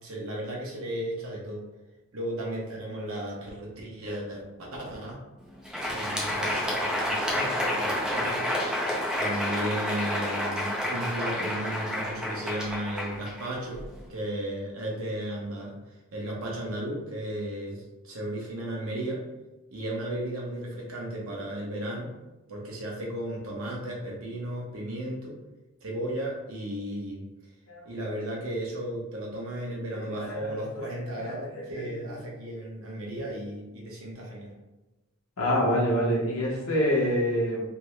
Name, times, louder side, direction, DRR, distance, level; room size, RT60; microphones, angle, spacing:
voice 1, 0.0-1.6 2.1-5.2 5.9-8.4 9.2-13.8 14.1-15.7 16.1-19.2 19.7-22.1 22.5-25.3 25.8-27.2 27.8-34.5, right 1 dB, 75° right, -2 dB, 1.0 m, -34 dB
Crowd, 5.5-14.0, left 1 dB, 5° right, 0.6 m, -29 dB
voice 2, 30.0-30.5 31.2-32.2 35.4-37.6, equal, 75° left, -3 dB, 1.0 m, -27 dB
3.4 x 2.1 x 3.1 m, 1.1 s
head